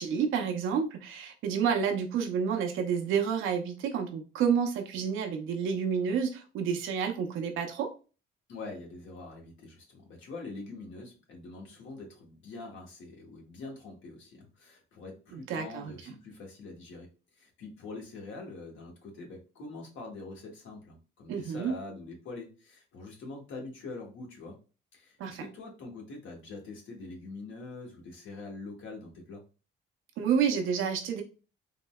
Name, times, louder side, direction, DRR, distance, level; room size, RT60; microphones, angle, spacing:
voice 1, 0.0-7.9 15.3-15.9 21.3-21.8 25.2-25.5 30.2-31.2, right 7 dB, 90° right, 4 dB, 0.6 m, -29 dB
voice 2, 8.5-17.1 17.4-24.6 24.9-29.4, left 3 dB, 75° left, 0 dB, 1.2 m, -44 dB
3.7 x 2.0 x 2.3 m, 0.33 s
cardioid pair, 90°, 20 cm